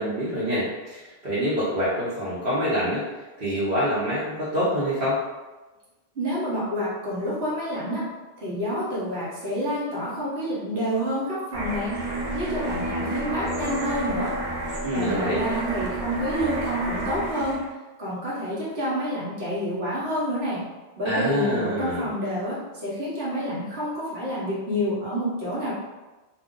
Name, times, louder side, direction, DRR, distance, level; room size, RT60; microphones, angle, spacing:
voice 1, 0.0-3.0 3.4-5.2 14.8-15.4 21.0-22.1, equal, 60° right, -11 dB, 1.0 m, -26 dB
voice 2, 6.1-8.0 8.4-11.9 12.3-14.3 14.9-17.7 18.0-20.6 21.0-25.7, equal, 85° right, -7 dB, 1.2 m, -28 dB
sound 1, 11.5-17.7, right 1 dB, 45° right, 0.6 m, -30 dB
2.5 x 2.3 x 3.6 m, 1.1 s
omnidirectional pair, 1.0 m